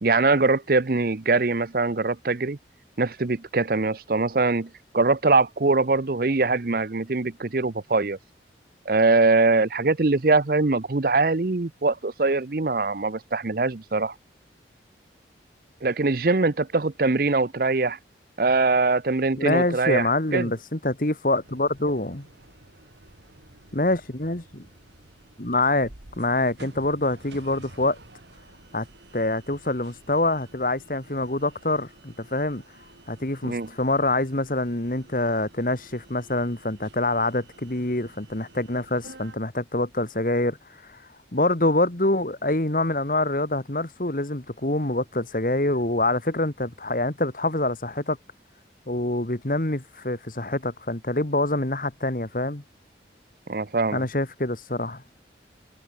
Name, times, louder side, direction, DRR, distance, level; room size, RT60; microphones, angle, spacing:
voice 1, 0.0-2.6 3.0-8.2 8.9-14.1 15.8-18.0 18.4-20.5 33.4-33.7 53.5-54.1, right 3 dB, 50° right, 0.8 m, -22 dB
voice 2, 19.4-22.3 23.7-24.6 25.4-25.9 26.2-28.0 28.7-28.9 29.1-32.6 33.1-40.6 40.8-41.0 41.3-48.2 48.9-52.6 53.9-55.0, left 2 dB, 50° left, 2.0 m, -25 dB
sound 1, 21.4-39.3, right 2 dB, 75° right, 3.4 m, -51 dB
head